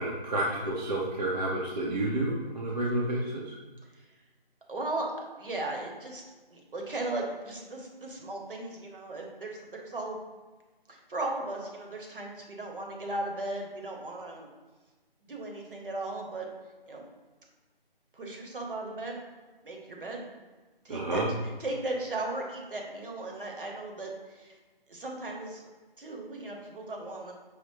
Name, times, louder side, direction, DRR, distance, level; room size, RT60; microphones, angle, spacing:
voice 1, 0.0-3.6 20.9-21.3, right 1 dB, 45° right, -4 dB, 0.7 m, -30 dB
voice 2, 4.7-5.1 5.4-6.2 6.5-10.2 10.9-14.5 15.3-16.5 16.9-17.0 18.1-19.2 19.6-20.2 20.8-21.2 21.6-24.6 24.9-25.7 26.0-27.3, right 2 dB, 60° right, 0 dB, 1.1 m, -36 dB
5.0 x 2.1 x 4.5 m, 1.3 s
figure-of-eight pair, 165°, 30 cm